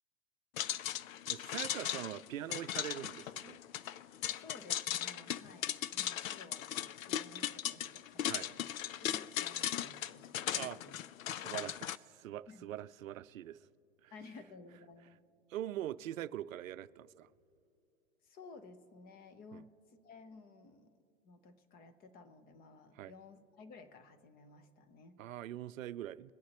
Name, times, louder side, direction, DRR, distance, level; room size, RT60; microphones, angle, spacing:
sound 1, 0.6-12.0, left 11 dB, 80° left, 0.5 m, -38 dB
voice 1, 1.3-3.6 8.3-8.5 10.6-10.8 11.4-11.9 12.1-13.6 14.0-14.1 15.5-17.3 19.5-19.6 23.0-23.1 25.2-26.3, right 12 dB, 80° right, 0.5 m, -43 dB
voice 2, 4.3-8.7 9.0-11.0 11.4-11.7 12.5-12.7 14.1-15.2 18.2-20.9 21.2-25.2, left 3 dB, 20° left, 0.8 m, -55 dB
23.0 x 8.4 x 3.0 m
hypercardioid pair, 125°, 40 cm